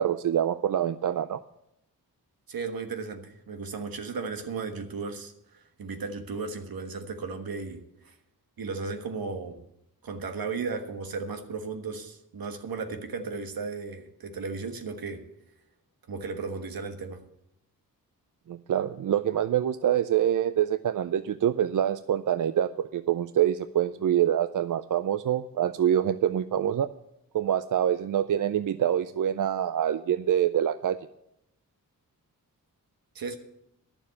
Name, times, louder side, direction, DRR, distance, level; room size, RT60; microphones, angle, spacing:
voice 1, 0.0-1.4 18.5-26.9 27.3-31.0, right 10 dB, 65° right, 13 dB, 0.5 m, -25 dB
voice 2, 2.5-8.1 8.6-9.6 10.0-15.2 16.1-17.2 33.1-33.4, right 4 dB, 85° right, 6 dB, 1.4 m, -35 dB
11.5 x 7.1 x 8.3 m, 0.81 s
wide cardioid pair, 100°, 34 cm